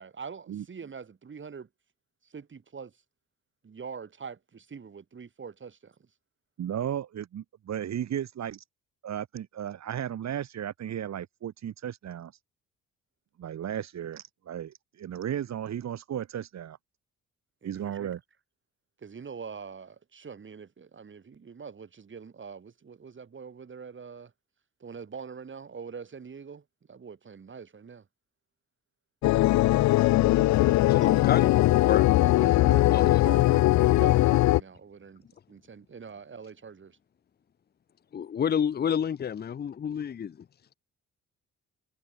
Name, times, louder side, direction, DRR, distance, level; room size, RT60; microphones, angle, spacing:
voice 1, 0.0-1.7 2.2-2.9 3.6-6.1 17.6-18.1 19.0-24.3 24.8-28.1 29.8-31.1 32.2-37.0, right 6 dB, 40° right, 7.6 m, -44 dB
voice 2, 6.6-8.6 9.0-12.3 13.4-16.8 17.6-18.2, right 10 dB, 60° right, 3.7 m, -35 dB
sound 1, 29.2-34.6, left 16 dB, 70° left, 0.5 m, -20 dB
voice 3, 30.9-31.5 31.8-32.1 32.9-33.2 38.1-40.5, left 8 dB, 35° left, 0.7 m, -29 dB
cardioid pair, 90°, 30 cm